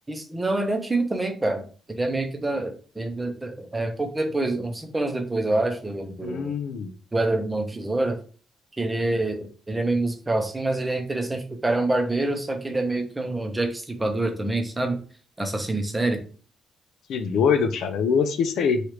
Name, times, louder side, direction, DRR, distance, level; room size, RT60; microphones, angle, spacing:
voice 1, 0.1-6.5 7.1-8.2 8.8-15.0 15.4-16.2, right 2 dB, 15° right, 6 dB, 0.6 m, -26 dB
voice 2, 6.2-6.9 17.1-18.8, left 6 dB, 75° left, 9 dB, 0.4 m, -23 dB
3.1 x 2.4 x 3.0 m, 0.41 s
cardioid pair, 90°, 0 cm